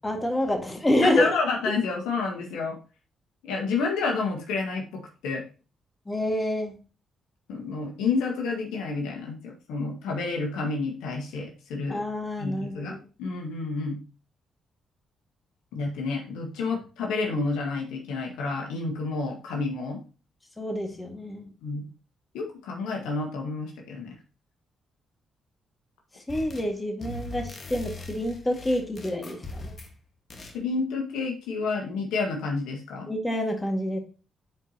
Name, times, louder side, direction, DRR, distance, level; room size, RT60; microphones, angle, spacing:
voice 1, 0.0-1.3 6.1-6.8 11.9-13.0 20.6-21.5 26.3-29.7 33.1-34.0, left 1 dB, 20° left, 3 dB, 2.0 m, -27 dB
voice 2, 1.0-2.8 3.4-4.8 5.2-5.4 7.5-12.0 12.4-14.0 15.7-20.0 21.6-21.9 22.3-24.1 30.5-33.1, left 4 dB, 80° left, 1 dB, 1.7 m, -29 dB
sound 1, 26.3-26.7 27.0-30.0 30.3-30.6, left 3 dB, 45° left, 1.6 m, -40 dB
9.5 x 4.6 x 2.9 m, 0.34 s
supercardioid pair, 50°, 0 cm